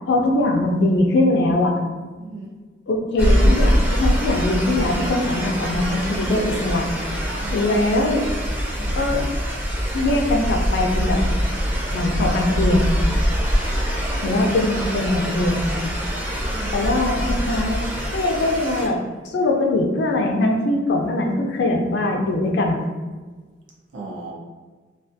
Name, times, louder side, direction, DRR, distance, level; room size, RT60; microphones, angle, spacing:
voice 1, 0.1-1.8 2.9-6.9 7.5-8.3 9.0-9.2 9.9-11.2 11.9-12.9 14.2-15.6 16.7-17.8 18.1-19.0 19.2-22.8, left 2 dB, 65° left, 1 dB, 0.4 m, -21 dB
voice 2, 2.2-2.5 7.3-7.8 8.7-9.1 14.1-14.5 16.4-16.8 23.9-24.3, right 3 dB, 90° right, -2 dB, 0.5 m, -36 dB
sound 1, 3.2-18.9, equal, 10° right, 0.5 m, -23 dB
2.4 x 2.4 x 2.5 m, 1.4 s
head